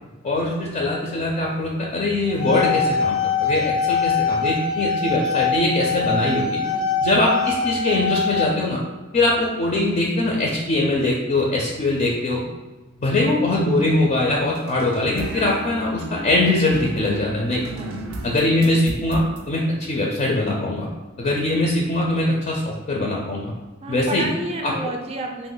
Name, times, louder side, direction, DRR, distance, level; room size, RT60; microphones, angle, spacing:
voice 1, 0.2-6.6 7.0-8.8 9.1-12.4 13.0-17.6 18.2-19.6 19.9-20.9 21.2-23.5 23.9-24.3 24.6-24.7, left 2 dB, 35° left, -2 dB, 0.4 m, -22 dB
sound 1, 2.2-8.4, left 5 dB, 85° left, 0.6 m, -23 dB
voice 2, 6.6-7.1 17.7-18.2 23.8-25.5, right 1 dB, 30° right, 2 dB, 0.4 m, -31 dB
sound 2, 14.6-19.4, right 1 dB, 85° right, 0.4 m, -34 dB
3.0 x 2.1 x 3.8 m, 1.2 s
head